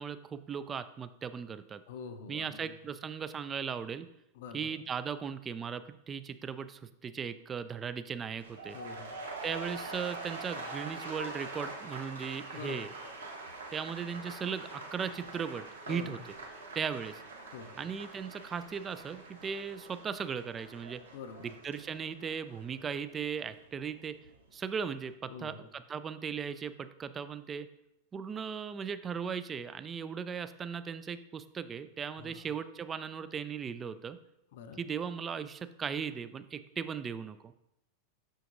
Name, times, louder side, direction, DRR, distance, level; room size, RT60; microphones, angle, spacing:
voice 1, 0.0-1.8 2.3-4.1 4.5-8.8 9.4-12.9 13.7-16.2 16.7-17.2 17.8-21.0 21.4-24.2 24.5-27.7 28.1-34.2 34.8-37.5, right 6 dB, 20° right, 13 dB, 0.3 m, -37 dB
voice 2, 1.9-2.7 4.3-4.8 8.7-9.2 12.5-13.0 15.9-16.2 17.5-17.8 21.1-21.5 25.3-25.7 32.2-32.4 34.5-34.8, left 5 dB, 55° left, 8 dB, 0.6 m, -46 dB
sound 1, 8.3-24.4 24.7-25.1, right 2 dB, 70° right, 1.0 m, -45 dB
6.6 x 6.3 x 2.6 m, 0.84 s
figure-of-eight pair, 90°, 0 cm